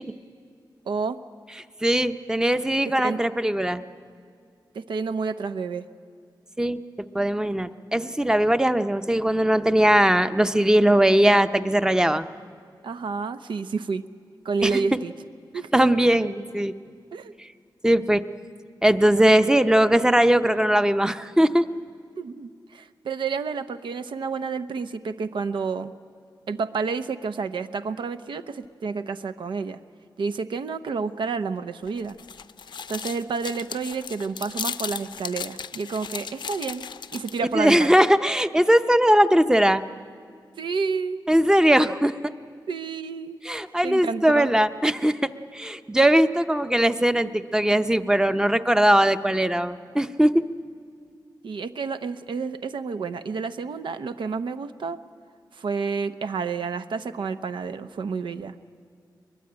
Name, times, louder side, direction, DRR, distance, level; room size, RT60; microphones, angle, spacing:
voice 1, 0.9-1.2 2.9-3.2 4.7-5.8 12.8-14.0 14.4-15.1 15.5-15.7 17.1-17.3 22.2-25.9 26.5-29.8 30.2-32.1 32.9-38.0 40.6-41.2 42.7-43.4 43.8-44.5 51.4-55.0 55.5-58.5, right 5 dB, 85° right, 10 dB, 0.8 m, -30 dB
voice 2, 1.8-3.8 6.6-6.8 7.1-12.3 14.6-14.8 15.7-16.7 17.8-18.2 18.8-21.7 37.5-39.8 41.3-42.2 43.4-50.4, right 1 dB, 10° right, 10 dB, 0.7 m, -20 dB
sound 1, 31.9-37.5, left 6 dB, 70° left, 0.6 m, -36 dB
22.5 x 21.5 x 8.8 m, 2.2 s
wide cardioid pair, 120°, 8 cm